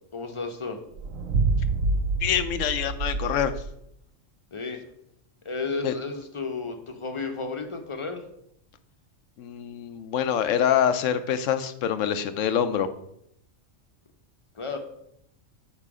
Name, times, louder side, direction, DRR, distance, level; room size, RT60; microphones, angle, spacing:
voice 1, 0.1-0.8 4.5-4.9 5.4-8.3 14.5-14.8, left 4 dB, 30° left, 5 dB, 0.7 m, -32 dB
sound 1, 0.9-3.8, right 3 dB, 85° right, 1.1 m, -27 dB
voice 2, 2.2-3.7 5.8-6.0 9.4-12.9, left 9 dB, 75° left, 11 dB, 1.0 m, -25 dB
7.4 x 4.8 x 4.8 m, 0.76 s
omnidirectional pair, 1.3 m